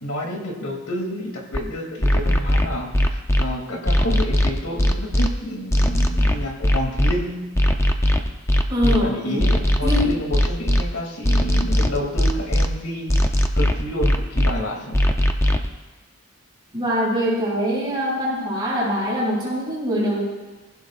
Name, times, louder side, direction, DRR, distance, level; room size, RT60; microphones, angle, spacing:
voice 1, 0.0-7.4 8.8-13.1 13.6-15.0, equal, 85° left, 1 dB, 2.7 m, -29 dB
sound 1, 1.5-1.6 2.0-3.4 3.9-5.3 5.7-7.1 7.5-9.0 9.4-10.8 11.2-12.7 13.1-14.5 14.9-15.7, left 1 dB, 15° left, 0.6 m, -18 dB
voice 2, 8.7-9.5 9.8-10.1 16.7-20.3, equal, 20° right, -6 dB, 5.5 m, -23 dB
24.0 x 15.5 x 2.5 m, 1.2 s
head